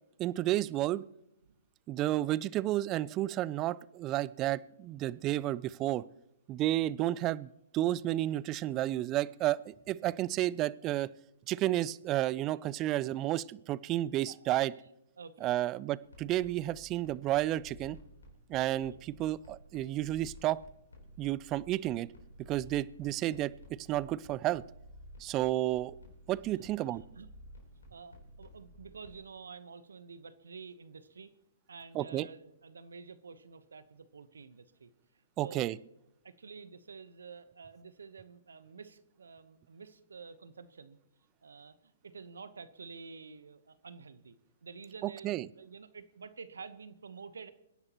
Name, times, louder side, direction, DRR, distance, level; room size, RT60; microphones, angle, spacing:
voice 1, 0.2-1.0 1.9-6.0 6.5-11.1 11.5-14.7 15.4-18.0 18.5-20.6 21.2-22.1 22.5-23.5 23.8-24.6 25.2-25.9 26.3-27.0 31.9-32.3 35.4-35.8 45.2-45.5, right 14 dB, 30° right, 21 dB, 0.4 m, -31 dB
voice 2, 14.3-14.8 15.2-15.5 18.8-19.0 26.5-27.3 27.9-31.3 31.7-34.9 35.4-35.7 36.2-41.0 41.4-44.4 44.6-47.5, right 5 dB, 80° right, 13 dB, 1.0 m, -49 dB
sound 1, 16.0-29.2, equal, 85° left, 3.8 m, -54 dB
24.5 x 11.0 x 3.0 m, 0.83 s
hypercardioid pair, 125°, 0 cm